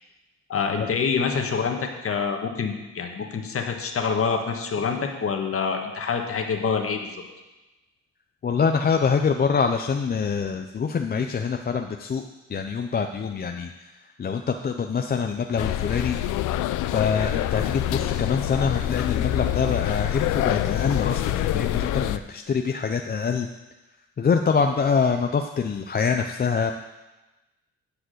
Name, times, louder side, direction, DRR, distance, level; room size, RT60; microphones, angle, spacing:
voice 1, 0.5-7.2 17.9-18.1, left 5 dB, 50° left, 3 dB, 1.5 m, -26 dB
voice 2, 8.4-12.2 12.5-16.2 16.9-23.5 24.2-26.7, left 5 dB, 30° left, 5 dB, 0.6 m, -25 dB
sound 1, 15.6-22.2, left 13 dB, 85° left, 0.5 m, -26 dB
10.0 x 4.9 x 8.0 m, 1.1 s
cardioid pair, 90°, 30 cm